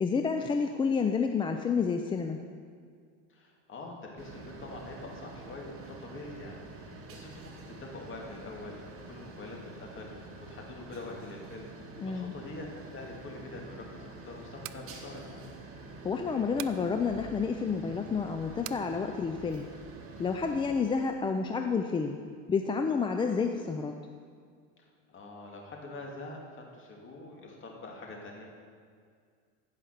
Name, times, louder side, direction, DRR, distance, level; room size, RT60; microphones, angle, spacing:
voice 1, 0.0-2.4 12.0-12.3 16.0-19.7 20.2-22.2 22.5-23.9, left 5 dB, 15° left, 5 dB, 0.4 m, -29 dB
voice 2, 3.3-11.7 12.0-15.5 25.1-28.4, left 2 dB, 30° left, 0 dB, 2.4 m, -45 dB
sound 1, 4.2-20.7, right 3 dB, 35° right, 1.8 m, -47 dB
sound 2, 14.6-14.9 16.6-16.8 18.6-18.9, right 15 dB, 90° right, 0.6 m, -42 dB
15.0 x 5.7 x 6.5 m, 2.1 s
supercardioid pair, 120°, 38 cm